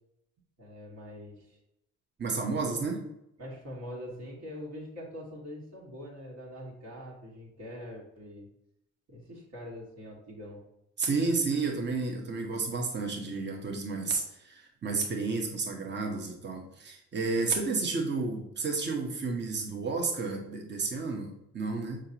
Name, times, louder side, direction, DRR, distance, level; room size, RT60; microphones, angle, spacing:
voice 1, 0.6-1.6 3.4-8.5 9.1-10.6, equal, 60° right, -4 dB, 2.0 m, -43 dB
voice 2, 2.2-3.0 11.0-22.0, right 4 dB, 35° right, 1 dB, 1.2 m, -31 dB
6.3 x 5.0 x 2.9 m, 0.83 s
cardioid pair, 90°, 30 cm